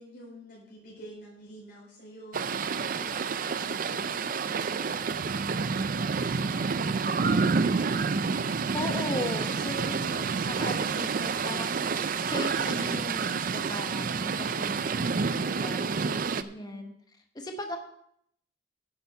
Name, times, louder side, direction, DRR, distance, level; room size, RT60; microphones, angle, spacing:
voice 1, 0.0-7.8 16.6-17.0, equal, 55° left, -5 dB, 4.5 m, -49 dB
sound 1, 2.3-16.4, right 5 dB, 50° right, 0.5 m, -29 dB
voice 2, 8.7-16.9 17.3-17.8, left 1 dB, 20° left, 4 dB, 1.0 m, -38 dB
10.0 x 8.2 x 5.5 m, 0.70 s
head